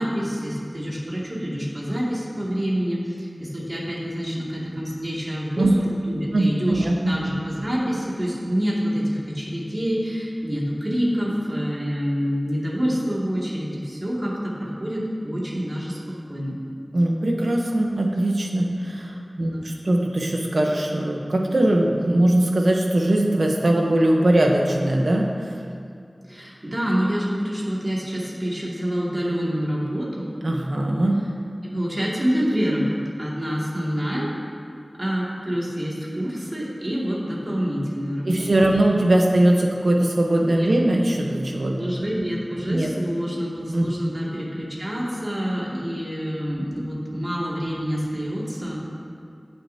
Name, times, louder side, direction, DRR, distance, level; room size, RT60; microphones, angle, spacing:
voice 1, 0.0-5.7 6.1-16.0 16.3-16.6 19.4-19.6 26.2-30.3 31.6-34.3 35.0-38.4 40.5-40.7 41.8-48.9, equal, 45° right, -6 dB, 2.4 m, -27 dB
voice 2, 6.3-7.2 16.9-25.5 30.4-31.2 38.3-41.9 42.7-42.9 43.7-43.9, right 1 dB, 90° right, 0 dB, 1.0 m, -21 dB
16.5 x 6.8 x 2.9 m, 2.4 s
wide cardioid pair, 50°, 0 cm